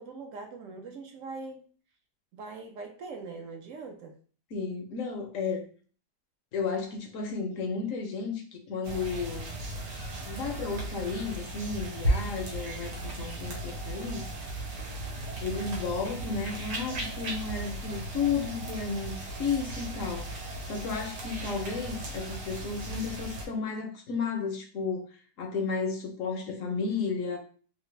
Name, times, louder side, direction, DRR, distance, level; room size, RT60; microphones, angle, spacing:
voice 1, 0.0-1.7 2.3-4.2, right 4 dB, 70° right, 3 dB, 0.8 m, -42 dB
voice 2, 4.5-5.7 6.5-9.5 10.2-14.3 15.4-25.0 25.4-27.4, left 5 dB, 65° left, 4 dB, 0.8 m, -33 dB
sound 1, 8.8-23.5, right 1 dB, 90° right, 1.5 m, -36 dB
3.2 x 2.4 x 3.1 m, 0.41 s
omnidirectional pair, 1.8 m